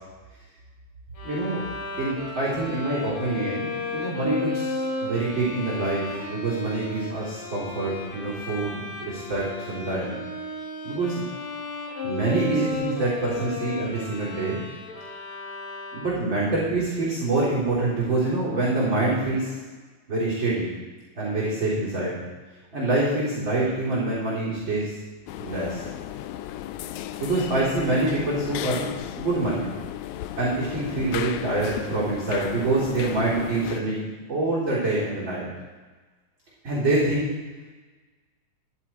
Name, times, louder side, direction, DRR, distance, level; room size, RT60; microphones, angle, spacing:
Bowed string instrument, 1.2-16.4, left 3 dB, 50° left, 1.9 m, -34 dB
voice 1, 1.2-1.6 2.0-10.2 10.8-11.2 12.0-14.6 15.9-19.6 20.1-20.7 21.1-22.2 22.7-24.9 25.4-25.8 27.2-29.7 30.4-35.5 36.6-37.3, right 2 dB, 35° right, -7 dB, 4.4 m, -26 dB
sound 1, 25.3-33.8, left 12 dB, 80° left, 1.8 m, -35 dB
14.5 x 11.5 x 4.5 m, 1.3 s
omnidirectional pair, 3.7 m